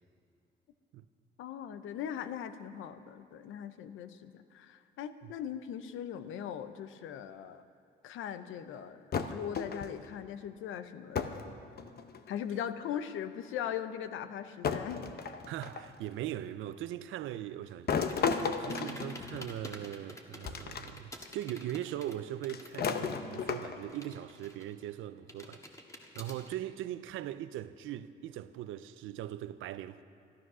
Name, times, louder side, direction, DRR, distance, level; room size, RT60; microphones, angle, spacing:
voice 1, 1.4-7.6 8.0-11.5 12.3-15.0, left 9 dB, 85° left, 0.7 m, -40 dB
sound 1, 9.1-10.1 11.2-11.5 11.8-12.4 13.4-13.5 14.6-16.0 17.9-19.7 20.4-20.9 21.3-21.4 22.5-24.0, left 6 dB, 50° left, 0.9 m, -34 dB
voice 2, 15.5-25.6 26.1-30.0, right 12 dB, 85° right, 0.5 m, -40 dB
sound 2, 18.0-23.0 23.3-24.9 25.3-26.5, left 1 dB, 15° left, 1.5 m, -49 dB
13.0 x 12.5 x 6.2 m
cardioid pair, 90°, 20 cm